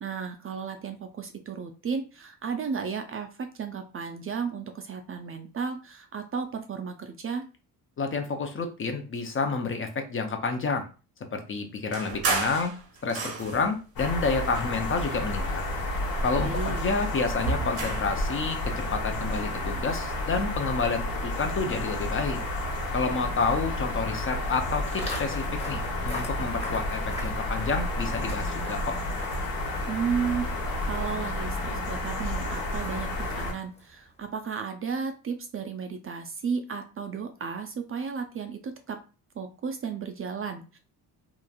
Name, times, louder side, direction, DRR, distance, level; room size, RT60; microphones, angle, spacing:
voice 1, 0.0-7.5 16.4-16.8 29.9-30.5 30.8-39.0 39.4-40.8, right 6 dB, 35° right, 6 dB, 0.4 m, -33 dB
voice 2, 8.0-10.9 11.3-12.7 13.0-15.6 16.2-18.6 18.9-22.4 22.9-29.0, left 4 dB, 35° left, 5 dB, 0.5 m, -29 dB
sound 1, 11.9-13.8 14.5-15.6 15.9-18.2, right 4 dB, 75° right, 0.9 m, -33 dB
sound 2, 14.0-33.5, left 1 dB, 70° left, 1.1 m, -31 dB
Walk footsteps, 24.9-34.1, left 1 dB, 15° left, 0.9 m, -43 dB
3.0 x 2.4 x 2.3 m, 0.33 s
cardioid pair, 100°, 38 cm